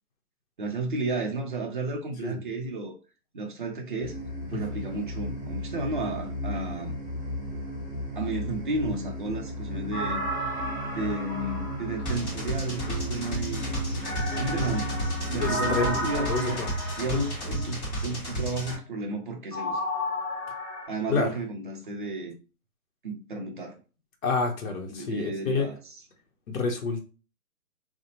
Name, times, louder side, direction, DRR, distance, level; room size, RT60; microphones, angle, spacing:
voice 1, 0.6-3.0 3.3-4.2 4.5-7.0 8.2-10.3 10.8-13.7 14.4-15.0 15.3-16.6 17.0-19.8 20.9-22.4 23.0-23.8 24.9-25.8, right 2 dB, 35° right, 0.4 m, -32 dB
sound 1, 4.0-16.1, left 1 dB, 20° right, 1.1 m, -35 dB
sound 2, 9.9-12.7 14.0-17.9 19.5-20.9, left 1 dB, 5° left, 1.0 m, -33 dB
sound 3, 12.1-18.8, right 1 dB, 25° left, 1.0 m, -32 dB
voice 2, 14.3-14.8 15.4-15.8 16.3-16.7 17.1-17.2 21.1-21.3 24.2-25.7 26.5-27.0, left 4 dB, 60° left, 0.7 m, -28 dB
2.6 x 2.0 x 2.8 m
hypercardioid pair, 145°, 45 cm